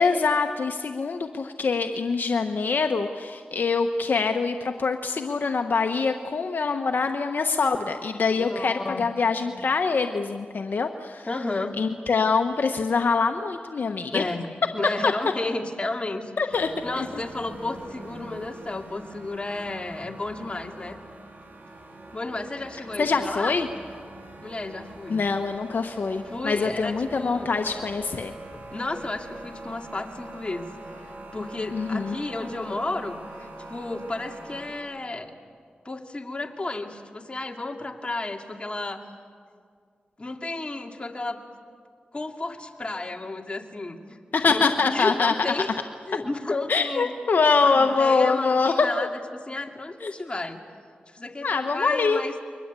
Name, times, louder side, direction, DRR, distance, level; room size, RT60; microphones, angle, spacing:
voice 1, 0.0-11.3 11.8-14.2 15.0-15.1 16.4-16.7 17.0-17.2 23.0-23.7 25.1-28.3 31.7-32.2 44.3-45.3 46.7-49.1 50.0-50.1 51.4-52.2, left 4 dB, 70° left, 6 dB, 1.1 m, -24 dB
voice 2, 8.4-9.1 11.3-11.8 14.1-21.0 22.1-23.6 24.4-25.2 26.3-27.5 28.5-30.7 31.0-33.2 33.7-35.3 35.8-39.0 40.2-41.4 42.1-44.2 44.5-45.7 46.1-47.1 47.6-50.6 51.1-52.4, left 2 dB, 35° left, 3 dB, 2.6 m, -32 dB
sound 1, 16.5-34.8, right 2 dB, 75° right, 5.0 m, -44 dB
30.0 x 23.0 x 8.3 m, 2.1 s
cardioid pair, 60°, 3 cm